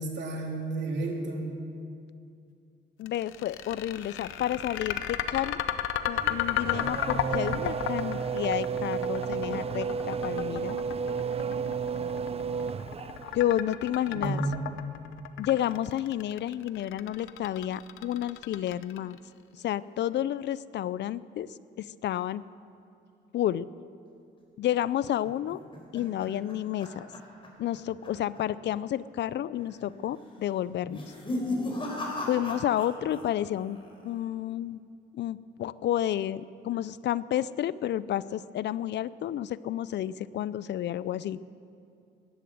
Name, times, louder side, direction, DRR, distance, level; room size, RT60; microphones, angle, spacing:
voice 1, 0.0-1.5 14.1-14.6, right 2 dB, 60° right, 0 dB, 3.3 m, -31 dB
voice 2, 3.0-5.6 6.1-10.8 13.3-14.4 15.4-19.2 19.6-22.4 23.3-23.7 24.6-25.6 25.9-27.1 27.6-31.0 32.3-33.8 34.0-34.8 35.1-41.4, left 11 dB, 65° left, 18 dB, 0.4 m, -30 dB
sound 1, 3.1-19.2, left 11 dB, 85° left, 0.8 m, -33 dB
Race car auto racing / Accelerating revving vroom, 6.2-13.4, right 6 dB, 30° right, 0.5 m, -32 dB
sound 2, 25.2-27.8 28.0-28.4 28.7-28.8 29.5-29.9 30.8-33.2 33.5-34.1, left 2 dB, 25° left, 4.4 m, -36 dB
15.5 x 12.0 x 7.8 m, 2.5 s
cardioid pair, 90°, 20 cm